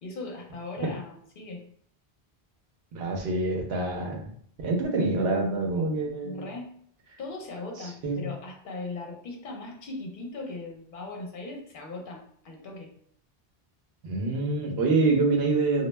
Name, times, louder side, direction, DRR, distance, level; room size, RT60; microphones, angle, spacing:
voice 1, 0.0-1.6 6.0-6.7 7.2-12.9, left 2 dB, 60° left, 1 dB, 0.8 m, -39 dB
voice 2, 2.9-4.3 4.6-6.5 7.8-8.2 14.0-15.9, right 3 dB, 80° right, 1 dB, 0.9 m, -26 dB
2.3 x 2.0 x 3.2 m, 0.63 s
omnidirectional pair, 1.0 m